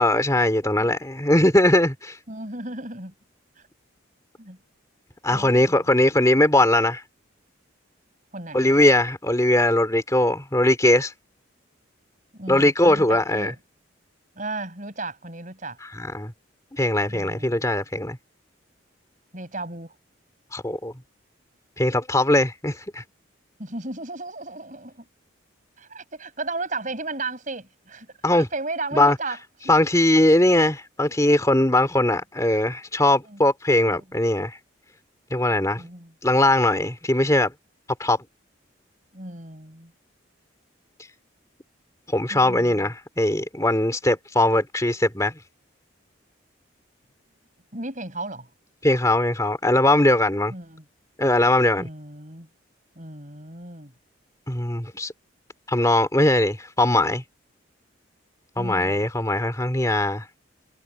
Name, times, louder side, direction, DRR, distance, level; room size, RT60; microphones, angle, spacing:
voice 1, 0.0-2.2 5.2-7.0 8.5-11.1 12.5-13.5 15.9-16.3 16.7-18.2 20.5-20.9 21.8-23.0 28.2-28.5 28.9-29.2 29.7-34.6 35.3-35.8 36.2-37.5 38.0-38.2 42.1-45.3 48.8-50.5 51.2-51.9 54.5-55.1 55.7-57.2 58.6-60.2, left 1 dB, 15° left, 2.5 m, -20 dB
voice 2, 2.3-3.1 4.4-4.6 5.3-5.9 8.3-8.8 12.3-13.6 14.4-15.8 17.1-17.7 19.3-19.9 23.6-25.1 25.8-28.1 28.3-29.4 29.6-29.7 33.3-33.4 33.9-34.1 35.7-36.1 39.1-39.9 42.3-42.9 47.7-48.5 50.5-50.9 51.8-52.5 53.0-53.9 58.6-59.1, right 2 dB, 40° right, 5.6 m, -35 dB
head